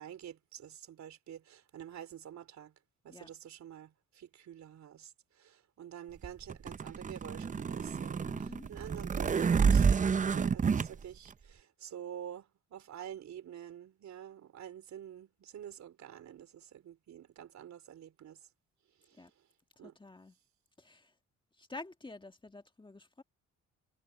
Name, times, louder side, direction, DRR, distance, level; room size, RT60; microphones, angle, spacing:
voice 1, 0.0-2.7 3.0-9.9 10.2-18.4 19.1-19.3 19.8-19.9, right 10 dB, 65° right, 3.8 m, -48 dB
sound 1, 6.2-10.9, right 6 dB, 25° right, 0.6 m, -29 dB
voice 2, 8.2-8.7 19.1-19.3 19.8-20.4 20.8-21.1 21.5-23.2, left 2 dB, 15° left, 1.8 m, -49 dB
cardioid pair, 90°, 30 cm